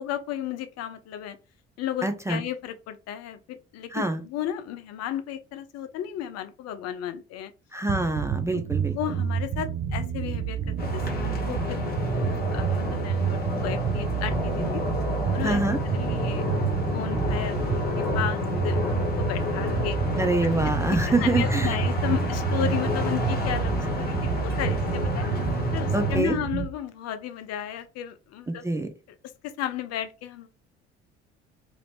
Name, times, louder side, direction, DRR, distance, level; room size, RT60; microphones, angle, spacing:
voice 1, 0.0-1.4 1.8-7.5 8.5-8.6 8.9-10.6 11.1-14.8 15.3-15.6 15.9-20.0 20.9-25.3 25.7-28.6 29.2-30.5, left 10 dB, 50° left, 0.5 m, -34 dB
voice 2, 2.0-2.4 3.9-4.2 7.7-8.9 15.4-15.8 20.2-21.8 25.9-26.4 28.5-28.9, right 2 dB, 10° right, 0.4 m, -25 dB
sound 1, 7.9-26.7, right 8 dB, 50° right, 0.7 m, -29 dB
sound 2, 10.8-26.2, left 3 dB, 30° left, 1.2 m, -29 dB
2.9 x 2.5 x 3.3 m
hypercardioid pair, 55°, 32 cm